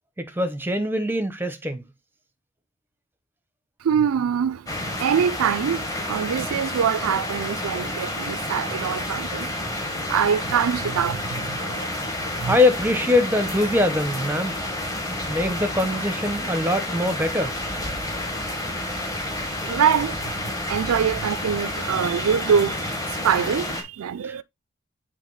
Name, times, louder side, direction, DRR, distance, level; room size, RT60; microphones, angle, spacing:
voice 1, 0.2-1.8 12.5-14.5 15.3-17.6 24.2-24.3, left 2 dB, 10° right, 0.7 m, -23 dB
voice 2, 3.8-11.9 12.4-12.6 19.7-24.4, right 7 dB, 80° right, 0.4 m, -24 dB
sound 1, 4.7-23.8, left 1 dB, 15° left, 1.2 m, -30 dB
7.5 x 3.4 x 3.8 m
head